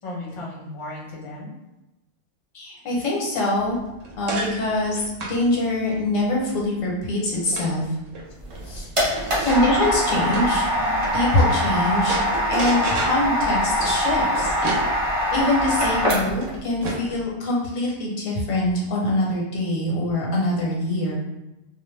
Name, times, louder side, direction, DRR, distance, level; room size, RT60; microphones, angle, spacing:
voice 1, 0.0-1.5 8.6-8.9 9.3-9.5, left 2 dB, 35° left, -5 dB, 0.6 m, -36 dB
voice 2, 2.5-3.8 4.2-7.9 9.2-14.5 15.3-21.2, left 1 dB, 85° left, -3 dB, 1.1 m, -24 dB
sound 1, 3.6-11.7 12.0-17.3, right 3 dB, 80° right, 1.0 m, -34 dB
sound 2, 8.4-16.5, equal, 35° right, 0.6 m, -23 dB
2.4 x 2.1 x 3.1 m, 0.99 s
omnidirectional pair, 1.3 m